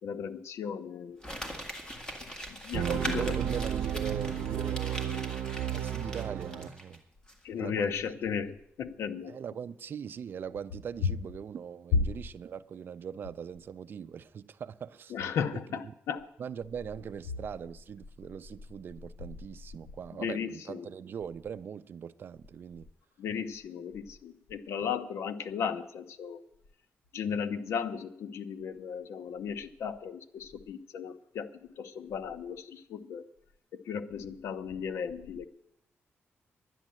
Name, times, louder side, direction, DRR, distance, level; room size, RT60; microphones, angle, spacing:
voice 1, 0.0-1.5 2.5-3.4 7.4-9.3 11.9-12.0 15.1-16.3 20.1-20.9 23.2-26.4 27.1-33.2 33.7-35.5, left 6 dB, 90° left, 0.8 m, -35 dB
Crumpling crinkling, 1.2-7.0 7.3-7.4, equal, 15° left, 1.8 m, -41 dB
sound 1, 2.7-6.7, right 9 dB, 90° right, 0.7 m, -33 dB
voice 2, 2.9-5.3 5.7-7.0 7.6-7.9 9.2-15.1 15.5-15.6 16.4-22.9, right 7 dB, 50° right, 0.4 m, -41 dB
11.0 x 10.0 x 7.5 m
wide cardioid pair, 140°, 5 cm